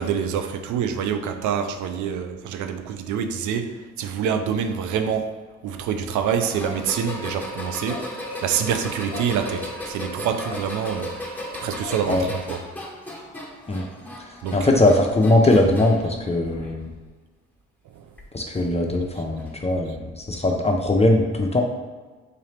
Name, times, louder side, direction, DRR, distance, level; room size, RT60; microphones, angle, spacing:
voice 1, 0.0-5.3 5.6-8.1 8.4-11.2 11.6-12.6 14.4-14.7 18.0-18.1, right 7 dB, 70° right, 8 dB, 0.5 m, -26 dB
sound 1, 6.4-16.1 16.5-17.1 18.2-18.3 19.4-19.5, left 1 dB, 5° left, 1.0 m, -36 dB
sound 2, 6.6-7.3 7.6-8.5 8.9-9.9 10.4-11.0 11.8-12.3, left 5 dB, 70° left, 0.6 m, -39 dB
voice 2, 14.5-16.9 18.3-21.6, left 2 dB, 20° left, 1 dB, 0.5 m, -20 dB
3.9 x 2.8 x 3.2 m, 1.4 s
hypercardioid pair, 45°, 30 cm